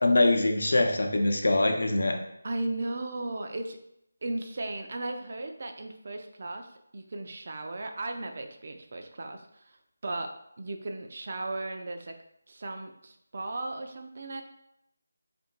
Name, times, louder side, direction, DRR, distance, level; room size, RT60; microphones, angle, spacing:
voice 1, 0.0-2.2, left 2 dB, 65° left, 3 dB, 0.6 m, -23 dB
voice 2, 2.4-3.8 4.2-6.7 6.9-9.8 10.0-12.2 12.5-14.4, right 2 dB, 45° right, 4 dB, 0.5 m, -36 dB
3.0 x 2.6 x 4.3 m, 0.77 s
figure-of-eight pair, 165°, 0 cm